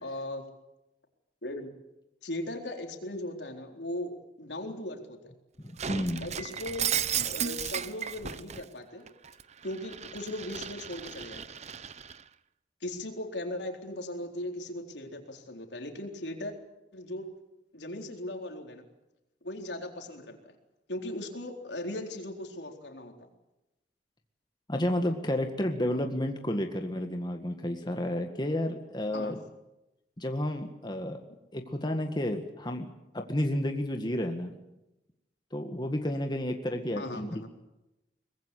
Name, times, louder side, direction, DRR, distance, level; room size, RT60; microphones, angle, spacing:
voice 1, 0.0-0.5 1.4-1.7 2.2-5.3 6.2-6.9 7.2-9.1 9.6-11.4 12.8-16.5 16.9-17.3 17.7-18.9 19.4-20.5 20.9-23.3 29.1-29.3 37.0-37.5, left 1 dB, 80° left, 3 dB, 4.1 m, -38 dB
voice 2, 5.6-6.3 24.7-29.4 30.2-31.2 31.5-32.9 33.1-34.6 35.5-37.5, left 1 dB, 25° left, 4 dB, 1.8 m, -31 dB
Shatter, 5.8-8.6 9.1-12.2, right 8 dB, 40° right, 0.8 m, -34 dB
23.5 x 20.5 x 8.4 m, 0.94 s
head